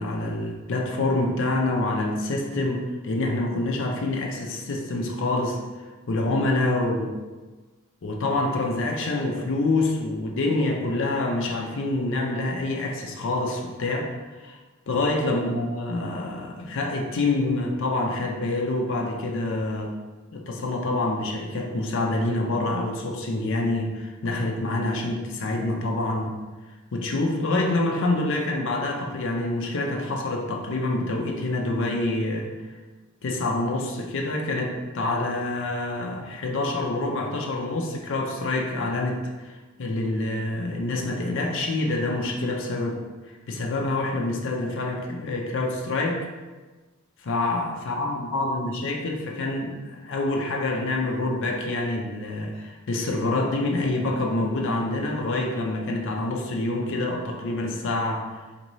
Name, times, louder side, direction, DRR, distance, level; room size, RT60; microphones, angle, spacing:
voice 1, 0.0-5.6 6.1-7.1 8.0-14.1 14.4-14.6 14.9-19.9 20.3-26.3 26.9-32.5 33.2-43.0 43.3-46.2 47.2-58.2, left 2 dB, 60° left, 1 dB, 0.5 m, -26 dB
4.3 x 2.7 x 3.0 m, 1.3 s
head